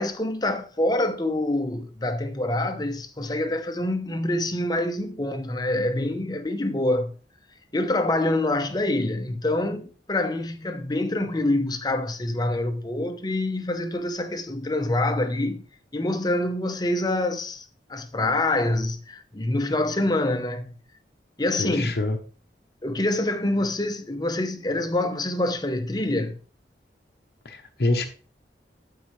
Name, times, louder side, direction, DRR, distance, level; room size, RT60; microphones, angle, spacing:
voice 1, 0.0-7.2 7.7-15.6 15.9-20.7 21.4-21.9 22.8-26.4, left 1 dB, 25° left, 0.8 m, -26 dB
voice 2, 21.6-22.2 27.4-28.1, left 2 dB, 60° left, 0.8 m, -25 dB
12.5 x 4.7 x 3.2 m
head